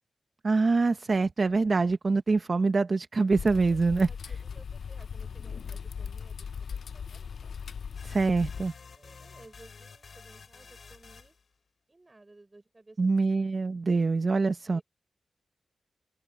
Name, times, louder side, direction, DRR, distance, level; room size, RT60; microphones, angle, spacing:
voice 1, 0.4-4.1 8.0-8.7 13.0-14.8, right 3 dB, 40° right, 0.7 m, -25 dB
sound 1, 3.3-8.7, left 6 dB, 75° left, 0.3 m, -38 dB
voice 2, 3.6-7.5 8.9-11.4 11.9-13.5 14.6-14.8, right 2 dB, 20° right, 5.8 m, -57 dB
sound 2, 8.0-11.5, left 5 dB, 60° left, 6.5 m, -50 dB
open air
wide cardioid pair, 150°, 0 cm